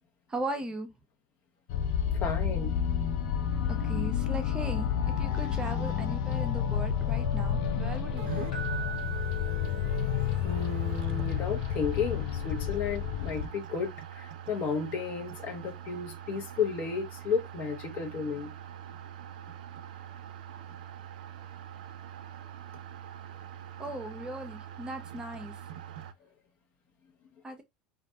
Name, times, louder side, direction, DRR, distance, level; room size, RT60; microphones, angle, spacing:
voice 1, 0.3-0.9 3.7-4.9 5.2-8.5 23.8-25.5 27.4-27.6, right 1 dB, 20° right, 0.6 m, -38 dB
sound 1, 1.7-13.5, left 8 dB, 60° left, 0.4 m, -30 dB
voice 2, 2.2-2.8 10.4-18.5, left 5 dB, 45° left, 0.9 m, -33 dB
sound 2, 8.2-26.1, right 9 dB, 70° right, 0.3 m, -44 dB
Keyboard (musical), 8.5-10.5 13.7-13.9, right 7 dB, 80° left, 0.9 m, -41 dB
2.3 x 2.1 x 2.6 m
hypercardioid pair, 80°, 4 cm